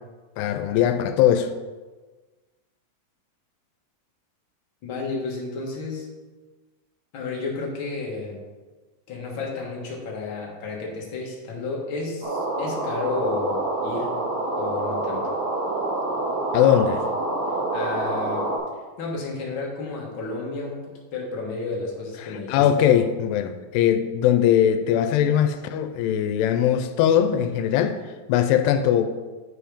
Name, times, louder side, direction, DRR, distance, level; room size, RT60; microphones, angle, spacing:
voice 1, 0.4-1.5 16.5-17.0 22.2-28.0 28.3-29.0, left 10 dB, 90° left, 7 dB, 2.7 m, -20 dB
voice 2, 4.8-6.1 7.1-8.4 9.1-14.2 14.6-15.3 17.7-18.5 19.0-20.8 21.1-22.9, left 3 dB, 65° left, -2 dB, 1.2 m, -31 dB
sound 1, 12.2-18.6, right 2 dB, 70° right, 4.0 m, -27 dB
10.5 x 4.9 x 5.1 m, 1.3 s
omnidirectional pair, 4.6 m